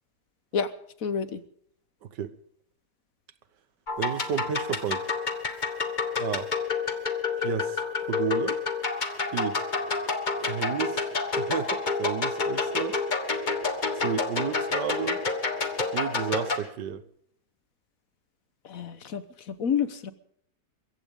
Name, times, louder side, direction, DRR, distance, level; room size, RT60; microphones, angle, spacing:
voice 1, 1.0-1.4 18.6-20.1, left 7 dB, 60° left, 1.4 m, -29 dB
sound 1, 3.9-16.6, left 4 dB, 30° left, 1.5 m, -29 dB
voice 2, 4.0-5.1 6.2-6.5 7.4-8.6 9.3-9.6 10.5-11.0 11.4-13.0 14.0-15.2 15.9-17.0, right 8 dB, 85° right, 1.7 m, -32 dB
23.0 x 15.5 x 3.7 m
omnidirectional pair, 1.8 m